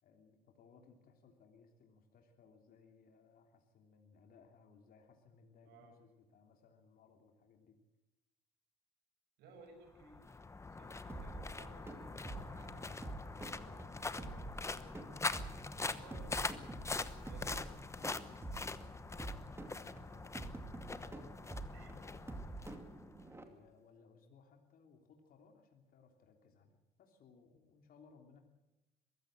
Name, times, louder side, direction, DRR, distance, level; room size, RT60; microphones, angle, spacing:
voice 1, 0.0-7.8 16.1-18.7 19.1-23.1 23.5-28.4, left 5 dB, 60° left, 3 dB, 3.2 m, -64 dB
voice 2, 9.4-10.4 10.7-15.0 15.8-16.6 16.9-17.6 21.7-21.9, right 3 dB, 85° right, 5 dB, 6.5 m, -59 dB
sound 1, 9.9-23.3, left 3 dB, 15° left, 1.0 m, -43 dB
sound 2, 11.1-23.4, right 2 dB, 15° right, 2.5 m, -48 dB
22.5 x 15.5 x 7.8 m, 1.0 s
cardioid pair, 110°, 17 cm